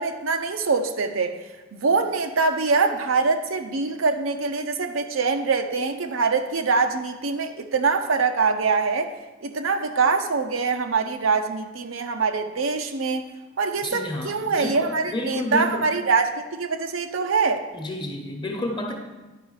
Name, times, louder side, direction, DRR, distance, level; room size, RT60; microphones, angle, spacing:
voice 1, 0.0-1.4 1.8-9.1 9.4-13.3 13.6-17.6, right 4 dB, 80° right, 6 dB, 0.7 m, -24 dB
voice 2, 13.8-15.9 17.7-18.9, left 1 dB, 20° left, 2 dB, 1.0 m, -30 dB
10.5 x 4.9 x 4.8 m, 1.1 s
head